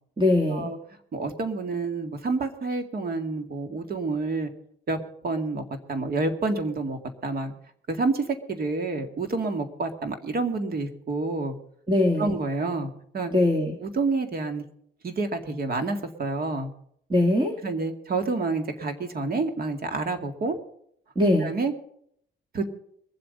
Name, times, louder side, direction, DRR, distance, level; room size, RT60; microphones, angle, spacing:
voice 1, 0.2-0.7 11.9-12.3 13.3-13.7 17.1-17.5 21.2-21.5, left 1 dB, 25° right, 2 dB, 2.3 m, -21 dB
voice 2, 1.1-4.5 4.9-5.0 5.2-7.5 7.9-11.6 12.2-13.3 13.8-14.6 15.0-16.7 17.6-20.6 21.4-21.7 22.5-22.7, right 3 dB, 50° right, 7 dB, 2.1 m, -28 dB
22.5 x 7.8 x 5.4 m, 0.67 s
cardioid pair, 90°, 20 cm